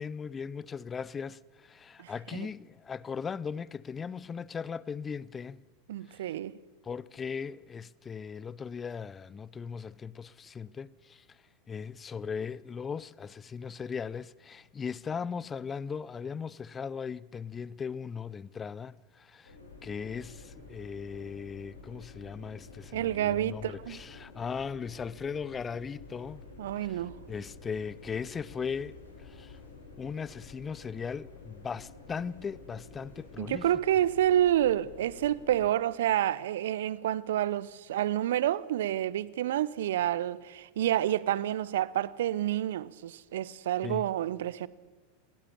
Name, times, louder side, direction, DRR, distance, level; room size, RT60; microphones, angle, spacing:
voice 1, 0.0-5.6 6.1-6.2 6.8-11.2 11.7-19.5 19.8-26.4 26.9-27.0 27.3-29.6 30.0-33.7 43.8-44.1, left 6 dB, 20° left, 0.6 m, -38 dB
voice 2, 2.0-2.5 5.9-6.6 22.9-24.0 26.6-27.2 33.4-44.7, right 12 dB, 65° right, 0.7 m, -29 dB
sound 1, 19.5-35.7, left 3 dB, 90° left, 4.3 m, -50 dB
21.5 x 17.5 x 7.2 m
figure-of-eight pair, 90°, 0 cm